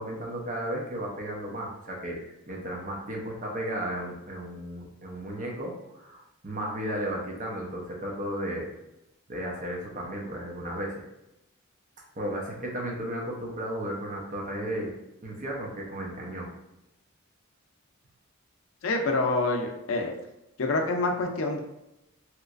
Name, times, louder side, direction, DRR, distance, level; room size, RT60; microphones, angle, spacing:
voice 1, 0.0-8.7 9.3-11.1 12.2-14.9 15.2-16.5, right 1 dB, 35° right, -1 dB, 0.7 m, -34 dB
voice 2, 18.8-20.1 20.6-21.6, left 2 dB, 70° left, 3 dB, 0.5 m, -26 dB
3.2 x 2.9 x 2.4 m, 0.89 s
head